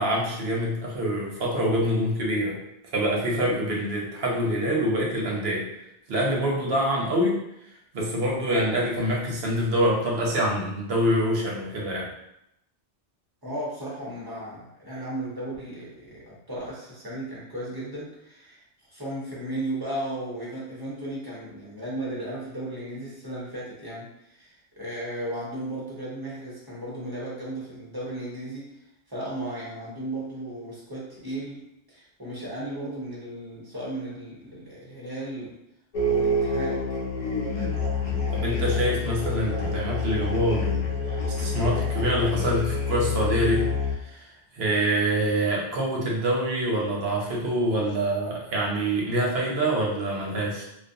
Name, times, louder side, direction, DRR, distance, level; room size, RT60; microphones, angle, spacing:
voice 1, 0.0-5.7 6.1-7.4 7.9-12.1 38.3-50.6, equal, 60° right, -2 dB, 0.9 m, -26 dB
voice 2, 13.4-18.6 18.9-28.8 29.1-35.6 36.0-36.9, right 1 dB, 25° right, -7 dB, 0.7 m, -35 dB
sound 1, 35.9-43.9, left 3 dB, 50° left, 0.4 m, -27 dB
2.4 x 2.3 x 2.6 m, 0.80 s
omnidirectional pair, 1.2 m